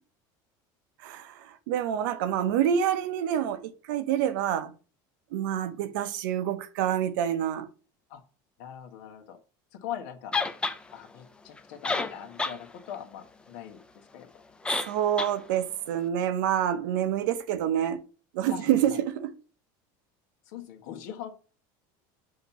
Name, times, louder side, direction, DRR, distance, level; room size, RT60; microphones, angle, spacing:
voice 1, 1.0-4.7 5.3-7.7 14.8-18.0 18.3-19.4, right 10 dB, 90° right, 0.8 m, -27 dB
voice 2, 8.6-9.4 9.7-10.3 10.6-13.8 14.1-14.3 18.5-19.0 20.5-21.3, left 10 dB, 75° left, 1.4 m, -41 dB
sound 1, 10.3-10.8 11.6-11.7 11.8-12.6 12.9-13.0 14.7-14.9 15.2-15.3, left 3 dB, 10° left, 0.5 m, -28 dB
6.6 x 2.9 x 5.5 m
cardioid pair, 155°, 10 cm